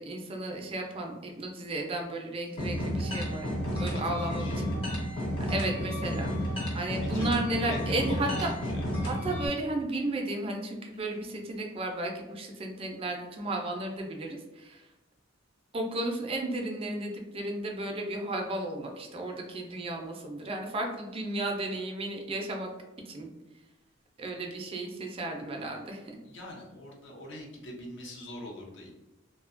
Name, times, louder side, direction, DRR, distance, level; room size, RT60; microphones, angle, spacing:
voice 1, 0.0-4.8 5.4-8.5 9.0-14.8 15.7-22.7 23.1-23.3 24.2-26.0, right 2 dB, 30° right, 2 dB, 0.3 m, -34 dB
sound 1, 2.6-9.5, equal, 30° left, 0.6 m, -31 dB
voice 2, 3.2-3.6 4.1-4.6 7.1-8.9 26.2-28.9, left 1 dB, 65° left, -1 dB, 0.6 m, -44 dB
2.7 x 2.1 x 2.4 m, 1.1 s
head